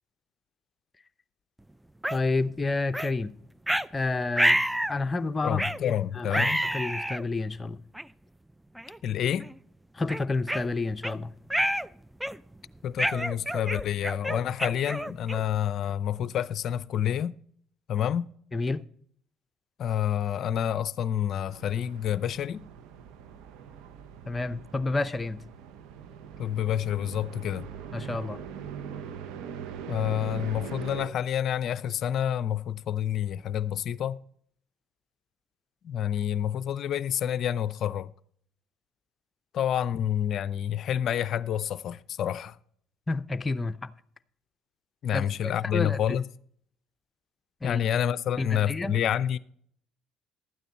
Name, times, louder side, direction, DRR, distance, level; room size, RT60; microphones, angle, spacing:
sound 1, 2.0-2.2 2.9-3.1 3.7-3.9 4.4-5.0 5.6-5.8 6.3-7.2 7.9-8.0 8.8-9.0 9.4-9.5 10.1-11.1 11.5-11.9 12.2-12.5 13.0-15.6, right 1 dB, 5° right, 0.4 m, -28 dB
voice 1, 2.1-3.3 3.9-4.6 4.9-6.3 6.6-7.8 9.9-11.3 18.5-18.8 24.3-25.4 27.9-28.4 43.1-43.9 45.1-46.2 47.6-47.8 48.4-49.0, left 3 dB, 25° left, 0.7 m, -30 dB
voice 2, 5.4-6.6 9.0-9.5 12.8-17.3 17.9-18.3 19.8-22.6 26.4-27.7 29.9-34.2 35.8-38.1 39.5-42.6 45.0-46.2 47.6-49.4, left 10 dB, 60° left, 0.5 m, -28 dB
sound 2, 21.5-31.1, right 7 dB, 70° right, 0.9 m, -42 dB
12.5 x 9.1 x 4.2 m
hypercardioid pair, 65°, 0 cm